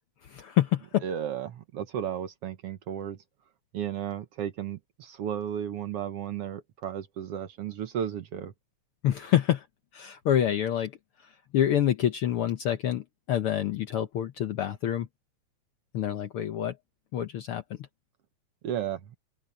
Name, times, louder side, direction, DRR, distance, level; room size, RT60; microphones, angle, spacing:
voice 1, 0.2-1.0 9.0-9.7 9.9-10.9 11.5-15.1 15.9-16.8 17.1-17.8, left 11 dB, 65° left, 1.4 m, -27 dB
voice 2, 1.0-3.2 3.7-8.5 18.6-19.2, right 9 dB, 65° right, 1.7 m, -34 dB
open air
omnidirectional pair, 3.3 m